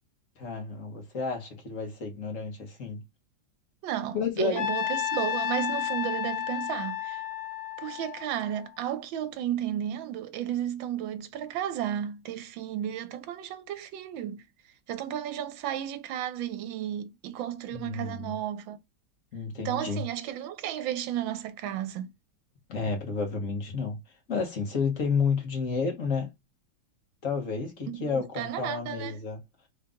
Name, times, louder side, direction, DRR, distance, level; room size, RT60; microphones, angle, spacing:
voice 1, 0.4-3.0 4.1-4.7 17.7-18.3 19.3-20.0 22.7-24.0 24.3-26.3 27.2-29.4, left 5 dB, 40° left, 1.7 m, -31 dB
voice 2, 3.8-7.2 7.8-14.4 14.9-18.8 19.6-22.1 27.9-29.2, right 11 dB, 75° right, 1.4 m, -33 dB
Trumpet, 4.6-8.8, left 11 dB, 65° left, 1.2 m, -32 dB
4.0 x 2.8 x 3.6 m
omnidirectional pair, 2.2 m